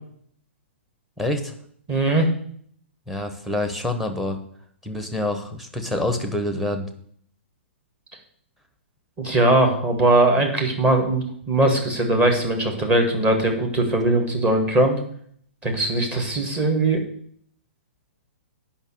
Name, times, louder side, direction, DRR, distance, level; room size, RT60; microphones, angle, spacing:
voice 1, 1.2-1.5 3.1-4.4 4.8-6.9, left 1 dB, ahead, 7 dB, 1.2 m, -26 dB
voice 2, 1.9-2.3 9.2-15.0 15.6-17.0, right 2 dB, 20° right, 2 dB, 2.1 m, -20 dB
8.9 x 5.7 x 7.9 m, 0.63 s
figure-of-eight pair, 115°, 7 cm